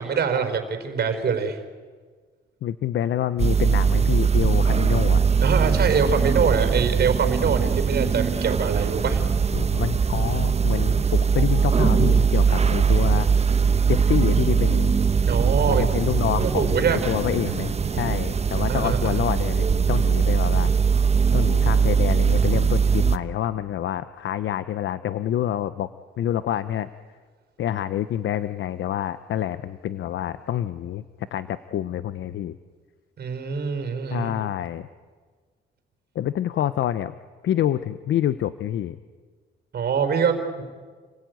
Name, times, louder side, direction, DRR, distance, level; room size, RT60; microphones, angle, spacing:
voice 1, 0.0-1.6 5.4-9.2 15.2-15.9 16.4-17.0 18.7-19.2 33.2-34.3 39.7-40.6, right 6 dB, 55° right, 7 dB, 4.7 m, -24 dB
voice 2, 2.6-5.2 9.5-13.3 13.9-15.0 15.7-20.7 21.3-25.9 26.2-26.9 27.6-32.6 34.1-34.9 36.1-37.1 37.4-39.0, left 11 dB, 70° left, 13 dB, 0.9 m, -27 dB
sound 1, 3.4-23.2, right 6 dB, 30° right, 1.2 m, -21 dB
30.0 x 21.0 x 9.5 m, 1.5 s
cardioid pair, 90°, 20 cm